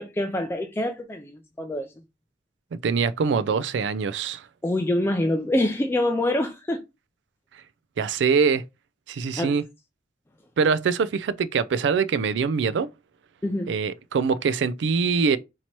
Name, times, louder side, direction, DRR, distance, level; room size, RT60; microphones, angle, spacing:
voice 1, 0.0-1.9 4.6-6.8 9.4-9.5 13.4-13.7, left 1 dB, 15° left, 0.3 m, -25 dB
voice 2, 2.7-4.5 7.5-7.6 8.0-8.6 9.1-9.6 10.6-12.9 13.7-15.4, right 5 dB, 75° right, 0.4 m, -23 dB
2.9 x 2.8 x 4.4 m
head